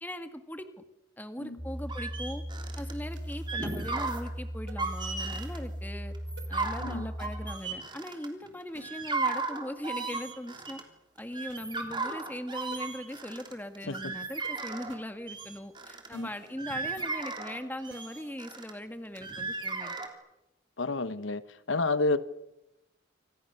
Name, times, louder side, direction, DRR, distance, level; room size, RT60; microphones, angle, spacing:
voice 1, 0.0-0.7 1.2-2.4 2.8-6.1 6.5-10.8 11.2-20.0, equal, 10° left, 8 dB, 1.9 m, -40 dB
sound 1, 1.6-7.6, equal, 5° right, 1.6 m, -38 dB
sound 2, 1.9-2.9 3.3-4.3 4.7-5.6 6.1-8.5 8.8-10.8 11.2-15.0 15.3-16.1 16.5-18.7 19.2-20.1, right 3 dB, 25° right, 3.5 m, -35 dB
sound 3, 3.1-3.3 4.7-4.8 5.3-5.4 6.4-6.5 7.2-7.3 8.7-8.8 10.1-10.2 11.5-11.6 12.3-12.4 12.7-12.8 14.4-14.5 14.9-15.0 16.1-16.5 17.0-17.1 17.9-18.3 19.1-19.3, right 2 dB, 60° right, 3.8 m, -50 dB
voice 2, 20.8-21.4 21.7-22.2, left 3 dB, 75° left, 14 dB, 1.1 m, -29 dB
28.5 x 25.5 x 6.9 m, 0.91 s
head